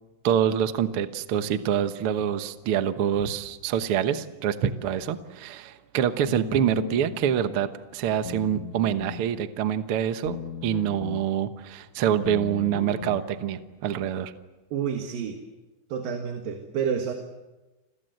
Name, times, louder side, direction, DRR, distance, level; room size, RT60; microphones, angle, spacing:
voice 1, 0.2-10.4 10.6-14.3, right 9 dB, 60° right, 10 dB, 1.5 m, -26 dB
sound 1, 6.3-7.2 8.2-9.3 10.3-11.2 12.2-13.2, left 8 dB, 60° left, 1.3 m, -37 dB
voice 2, 14.7-15.4 15.9-17.1, right 7 dB, 80° right, 5 dB, 3.5 m, -29 dB
30.0 x 22.5 x 7.9 m, 1.1 s
omnidirectional pair, 4.0 m